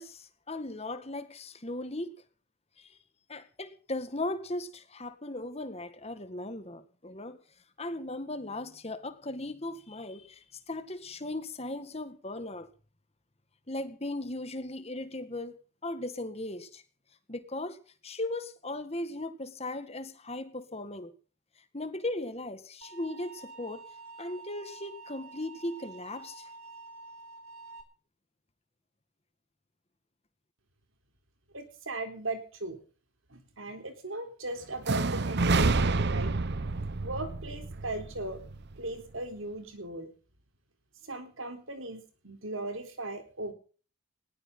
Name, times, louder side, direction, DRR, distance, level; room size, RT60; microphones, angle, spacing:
voice 1, 0.0-2.1 2.8-2.9 3.3-7.4 7.8-12.7 13.7-15.6 15.8-16.8 17.3-17.8 18.0-21.1 21.7-23.8 24.2-26.5, left 2 dB, 30° left, 1.9 m, -37 dB
sound 1, 22.8-27.8, right 3 dB, 90° right, 4.3 m, -48 dB
voice 2, 31.5-32.8 33.3-36.4 37.0-38.4 38.8-40.1 41.0-43.5, right 2 dB, 70° right, 4.0 m, -38 dB
sound 2, 34.8-38.8, right 3 dB, 50° right, 0.8 m, -28 dB
20.0 x 17.5 x 4.0 m
head